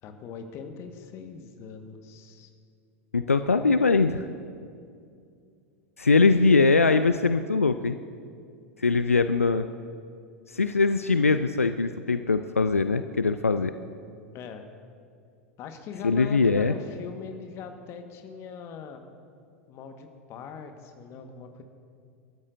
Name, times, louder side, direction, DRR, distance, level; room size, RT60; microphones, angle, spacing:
voice 1, 0.0-2.5 14.3-14.6 15.6-19.0 19.7-21.6, left 6 dB, 40° left, 6 dB, 1.5 m, -41 dB
voice 2, 3.1-4.2 6.0-8.0 8.8-9.7 10.5-13.7 16.0-16.7, left 4 dB, 85° left, 10 dB, 0.4 m, -22 dB
29.0 x 13.5 x 2.7 m, 2.3 s
figure-of-eight pair, 85°, 7 cm